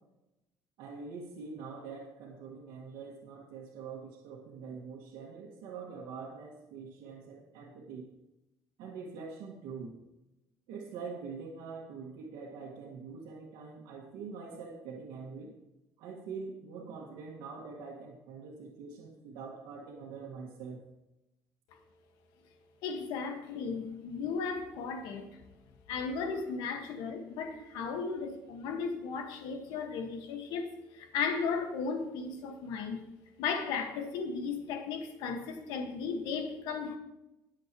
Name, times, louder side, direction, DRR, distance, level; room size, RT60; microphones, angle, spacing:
voice 1, 0.8-8.1 8.8-9.9 10.7-15.5 16.0-20.8, right 5 dB, 80° right, 1.9 m, -44 dB
voice 2, 22.8-25.4 25.9-33.0 33.4-37.0, left 5 dB, 75° left, 1.6 m, -35 dB
21.0 x 7.7 x 3.1 m
cardioid pair, 155°, 7 cm